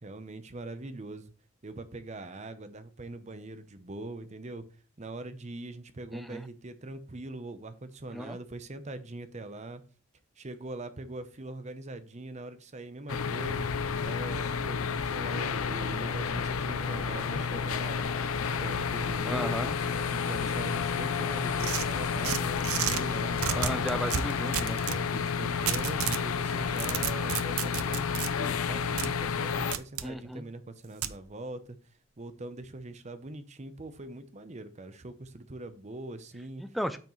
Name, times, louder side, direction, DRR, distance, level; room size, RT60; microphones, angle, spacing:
voice 1, 0.0-1.3 1.6-4.6 5.0-9.8 10.4-13.7 14.0-18.1 18.5-23.8 24.8-31.8 32.2-36.6, right 2 dB, 30° right, 11 dB, 0.7 m, -42 dB
sound 1, 13.1-29.8, left 6 dB, 80° left, 0.6 m, -31 dB
sound 2, 13.4-24.2, left 1 dB, 15° left, 0.9 m, -45 dB
voice 2, 19.3-19.8 22.9-23.2 23.6-24.8 30.0-30.4 36.6-37.0, equal, ahead, 10 dB, 0.4 m, -35 dB
sound 3, 21.6-23.0 23.4-25.0 25.7-26.2 26.6-28.3 29.0-29.1 29.7-30.1 31.0-31.2, right 10 dB, 85° right, 0.6 m, -32 dB
8.8 x 5.9 x 3.1 m, 0.39 s
head